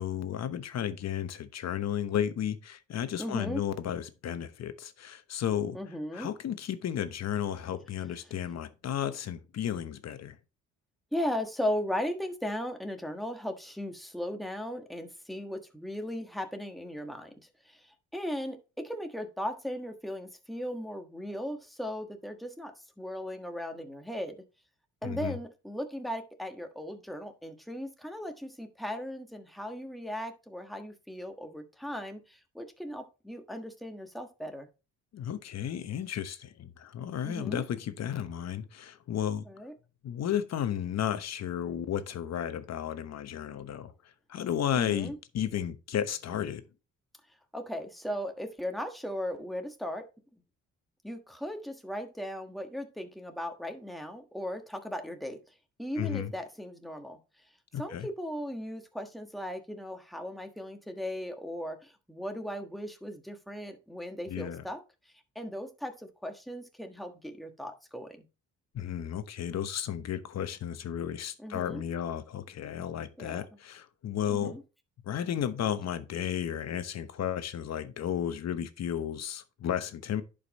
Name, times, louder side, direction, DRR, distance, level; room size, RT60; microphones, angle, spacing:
voice 1, 0.0-5.8 6.1-10.4 25.0-25.4 35.1-39.4 40.0-43.9 44.3-46.6 56.0-56.3 57.7-58.1 64.3-64.6 68.7-74.6 75.0-80.2, left 9 dB, 60° left, 1.0 m, -33 dB
voice 2, 3.2-3.6 5.7-6.3 11.1-17.3 17.6-24.3 25.0-34.7 37.2-37.6 39.4-39.7 44.7-45.2 47.5-50.1 51.0-55.4 55.8-57.2 57.8-64.8 65.3-68.2 71.4-71.8 73.2-73.4 74.3-74.6, equal, ahead, 1.4 m, -37 dB
11.0 x 5.2 x 3.0 m
cardioid pair, 90°, 30 cm